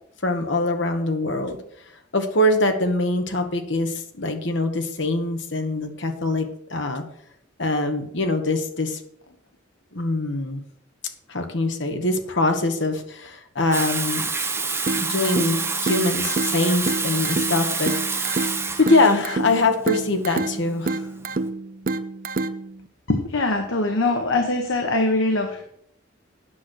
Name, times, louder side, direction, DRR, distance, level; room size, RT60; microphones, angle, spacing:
voice 1, 0.2-1.6 2.1-7.0 7.6-9.0 9.9-10.6 11.3-14.3 14.6-18.5 18.8-21.0, left 2 dB, 65° left, 6 dB, 1.4 m, -23 dB
Water tap faucet / Sink (filling or washing), 13.7-21.4, right 4 dB, 10° right, 0.8 m, -27 dB
sound 1, 14.9-22.9, right 3 dB, 45° right, 0.5 m, -29 dB
voice 2, 23.1-25.6, left 2 dB, 80° left, 4 dB, 1.1 m, -22 dB
9.5 x 6.3 x 6.3 m, 0.70 s
head